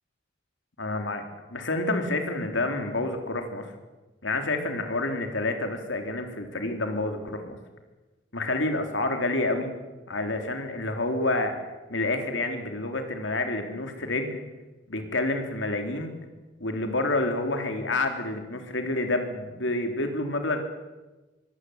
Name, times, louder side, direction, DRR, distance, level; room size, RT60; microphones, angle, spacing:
voice 1, 0.8-1.2 1.5-3.7 4.2-7.6 8.3-9.7 10.1-11.5 11.9-14.4 14.9-16.1 16.6-20.6, left 2 dB, 85° left, 5 dB, 3.5 m, -28 dB
23.0 x 18.0 x 8.1 m, 1.2 s
head